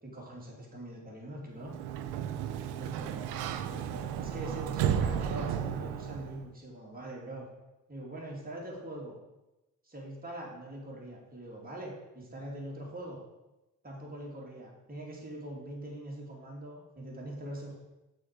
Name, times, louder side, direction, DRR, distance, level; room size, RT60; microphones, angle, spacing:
voice 1, 0.0-1.8 2.7-7.5 7.9-9.2 9.8-13.2 13.8-17.8, right 1 dB, 25° right, -3 dB, 2.8 m, -43 dB
Sliding door, 1.6-6.4, right 9 dB, 80° right, 0.6 m, -33 dB
6.1 x 4.7 x 6.6 m, 1.0 s
hypercardioid pair, 50°, 38 cm